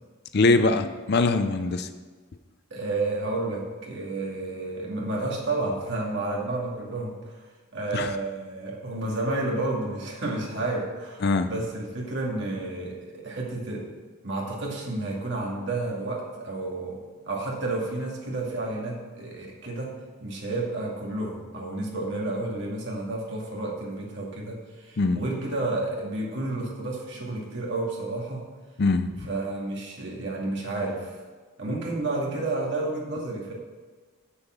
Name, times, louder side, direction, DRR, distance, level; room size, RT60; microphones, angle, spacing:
voice 1, 0.3-1.9 7.9-8.1 11.2-11.5 25.0-25.2 28.8-29.1, left 3 dB, 45° left, 10 dB, 0.5 m, -22 dB
voice 2, 2.7-7.4 7.7-13.9 14.2-28.5 29.2-31.2 31.6-33.5, right 2 dB, 55° right, -2 dB, 2.0 m, -31 dB
7.2 x 6.9 x 5.8 m, 1.4 s
head